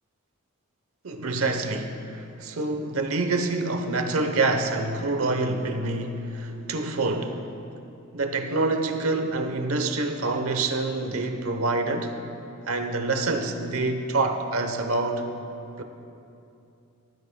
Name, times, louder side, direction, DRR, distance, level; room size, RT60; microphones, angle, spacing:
voice 1, 1.0-7.4 8.1-12.2 12.7-15.3 15.8-15.9, right 3 dB, 80° right, 6 dB, 0.9 m, -26 dB
18.5 x 13.5 x 2.3 m, 2.7 s
head